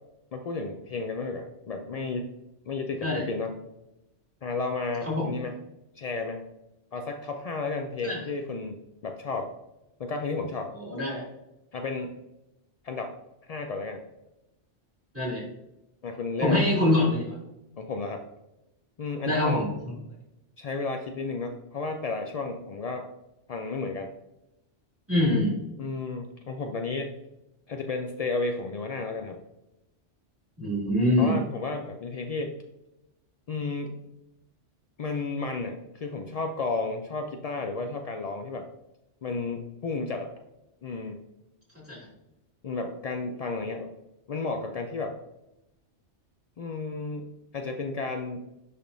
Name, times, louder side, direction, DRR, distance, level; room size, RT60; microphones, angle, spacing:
voice 1, 0.3-2.3 2.7-3.6 4.4-5.6 6.0-6.5 6.9-8.8 9.0-9.5 10.0-10.7 11.7-12.1 12.8-13.1 13.5-14.0 16.0-16.7 17.8-18.3 19.0-19.7 20.6-23.1 23.5-24.1 25.8-27.1 27.7-29.4 31.2-32.6 33.5-33.9 35.0-38.7 39.2-40.3 40.8-41.2 42.6-43.9 44.3-45.2 46.6-48.5, left 3 dB, 70° left, 4 dB, 0.3 m, -32 dB
voice 2, 10.7-11.3 15.1-15.4 16.4-17.4 19.2-19.7 25.1-25.6 30.6-31.3 41.9-42.1, left 1 dB, 10° right, -5 dB, 2.2 m, -24 dB
10.5 x 3.5 x 2.6 m, 0.92 s
omnidirectional pair, 1.2 m